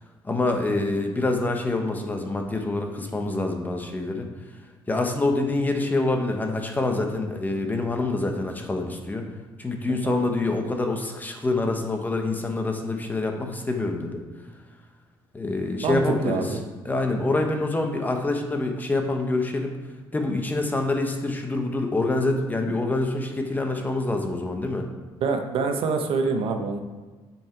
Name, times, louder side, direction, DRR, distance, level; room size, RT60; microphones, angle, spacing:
voice 1, 0.2-4.3 4.9-9.3 9.6-14.2 15.3-16.4 16.8-19.7 20.1-24.9, left 2 dB, 15° left, 4 dB, 1.0 m, -26 dB
voice 2, 15.8-16.6 25.2-26.8, right 4 dB, 65° right, 5 dB, 0.8 m, -25 dB
7.3 x 6.0 x 4.5 m, 1.3 s
cardioid pair, 120°, 10 cm